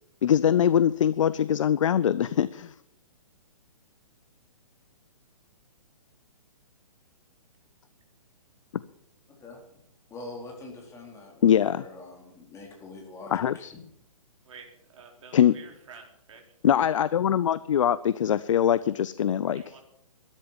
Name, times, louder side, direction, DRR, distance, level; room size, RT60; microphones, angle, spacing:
voice 1, 0.2-2.7 8.7-8.8 11.4-11.8 13.3-13.7 15.3-15.5 16.6-19.7, left 9 dB, 60° left, 17 dB, 0.6 m, -23 dB
voice 2, 10.1-13.7, left 2 dB, 15° left, 0 dB, 4.0 m, -44 dB
voice 3, 14.4-16.4 19.5-19.8, right 5 dB, 60° right, 2 dB, 4.1 m, -49 dB
13.5 x 10.5 x 7.2 m, 0.73 s
figure-of-eight pair, 130°, 19 cm